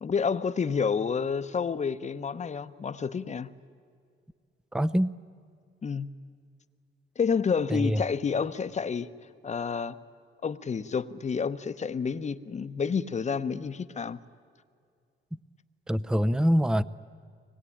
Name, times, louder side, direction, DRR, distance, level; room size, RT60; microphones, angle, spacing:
voice 1, 0.0-3.5 5.8-6.1 7.2-9.1 9.4-10.0 10.4-14.2, left 6 dB, 35° left, 12 dB, 0.9 m, -29 dB
voice 2, 4.7-5.1 7.7-8.0 15.9-16.8, equal, 5° right, 15 dB, 0.6 m, -24 dB
23.5 x 20.5 x 10.0 m, 2.2 s
cardioid pair, 90°, 20 cm